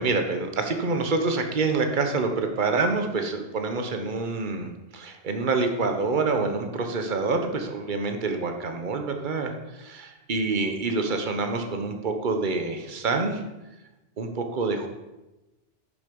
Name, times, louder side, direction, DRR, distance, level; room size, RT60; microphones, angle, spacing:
voice 1, 0.0-13.4 14.2-14.9, right 3 dB, 45° right, 5 dB, 1.2 m, -27 dB
10.5 x 6.9 x 5.3 m, 1.0 s
omnidirectional pair, 1.1 m